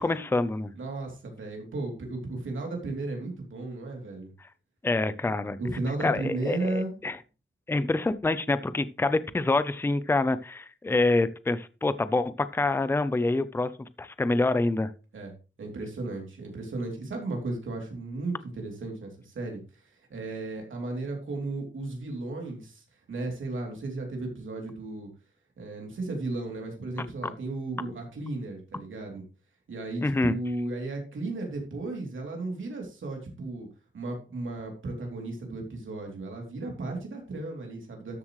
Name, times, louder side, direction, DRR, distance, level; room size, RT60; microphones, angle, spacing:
voice 1, 0.0-0.7 4.8-5.6 6.0-7.2 7.7-13.7 14.0-14.9 30.0-30.3, left 2 dB, 10° left, 13 dB, 0.5 m, -26 dB
voice 2, 0.8-4.3 5.6-6.9 15.1-15.3 15.6-25.1 25.6-29.2 29.7-33.7 33.9-38.2, right 2 dB, 85° right, 1 dB, 3.0 m, -35 dB
13.0 x 7.2 x 3.1 m, 0.33 s
wide cardioid pair, 155°, 20 cm